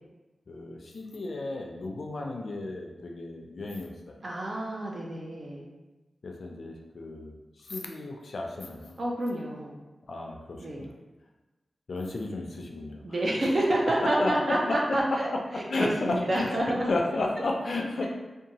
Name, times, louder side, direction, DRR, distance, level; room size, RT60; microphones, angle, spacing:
voice 1, 0.5-4.2 6.2-9.0 10.1-10.9 11.9-13.0 14.0-14.8 15.7-16.6 16.9-18.1, left 2 dB, 65° left, 1 dB, 0.4 m, -33 dB
voice 2, 4.2-5.7 9.0-9.7 10.6-10.9 13.0-15.3 15.5-16.9, right 1 dB, 45° right, -2 dB, 0.6 m, -28 dB
2.7 x 2.2 x 2.8 m, 1.1 s
wide cardioid pair, 100°, 0 cm